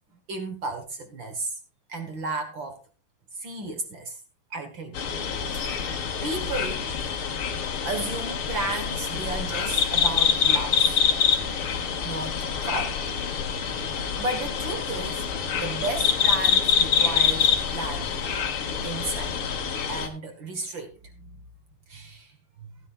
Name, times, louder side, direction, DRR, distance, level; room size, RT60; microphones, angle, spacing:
voice 1, 0.3-1.6 1.9-2.8 3.3-4.2 4.5-5.0 5.5-6.8 7.8-11.0 12.0-13.0 13.8-15.3 15.5-18.2 18.8-19.3 19.9-21.3 21.9-22.8, right 2 dB, 55° right, 1.3 m, -34 dB
sound 1, 4.9-20.1, left 7 dB, 55° left, 1.5 m, -26 dB
16.5 x 11.0 x 2.5 m
omnidirectional pair, 4.5 m